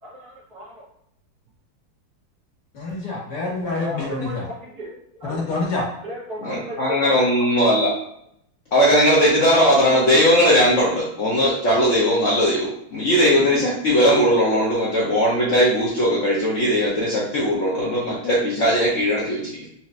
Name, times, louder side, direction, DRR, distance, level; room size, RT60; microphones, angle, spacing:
voice 1, 0.0-0.8 3.8-5.7 5.9-7.2, left 1 dB, 55° right, -5 dB, 1.3 m, -36 dB
voice 2, 2.7-4.4 5.3-5.8, left 3 dB, 60° left, -3 dB, 1.5 m, -26 dB
voice 3, 6.4-7.9 8.7-19.7, equal, 80° left, -6 dB, 0.6 m, -19 dB
4.2 x 2.8 x 2.5 m, 0.72 s
omnidirectional pair, 2.3 m